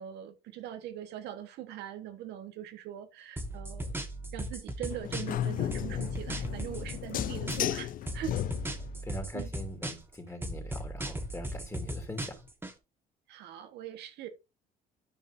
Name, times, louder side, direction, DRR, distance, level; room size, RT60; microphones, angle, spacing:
voice 1, 0.0-4.0 4.3-8.4 9.3-9.5 13.3-14.3, right 11 dB, 80° right, 1.4 m, -42 dB
sound 1, 3.4-5.4 5.7-7.8 8.1-10.1 10.4-12.7, right 1 dB, 15° right, 1.5 m, -37 dB
sound 2, 4.9-9.0, left 11 dB, 55° left, 0.5 m, -34 dB
voice 2, 9.0-12.4, left 1 dB, 15° left, 3.0 m, -42 dB
12.5 x 5.4 x 2.7 m
cardioid pair, 110°, 17 cm